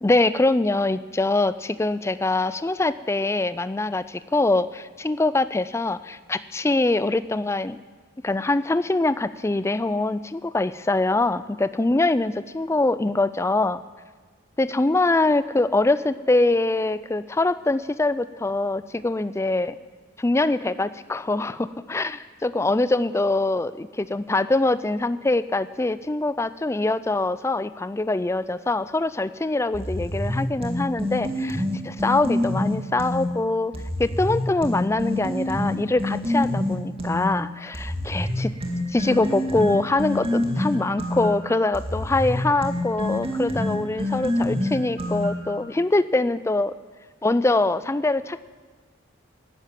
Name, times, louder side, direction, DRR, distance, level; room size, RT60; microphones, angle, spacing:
voice 1, 0.0-7.8 8.2-13.8 14.6-19.7 20.2-33.7 34.0-38.5 38.9-46.7 47.2-48.4, left 2 dB, 15° left, 15 dB, 0.4 m, -23 dB
sound 1, 29.7-33.3 33.7-37.3 37.7-45.5, left 1 dB, 30° right, 2.0 m, -26 dB
11.5 x 10.5 x 9.2 m, 1.4 s
head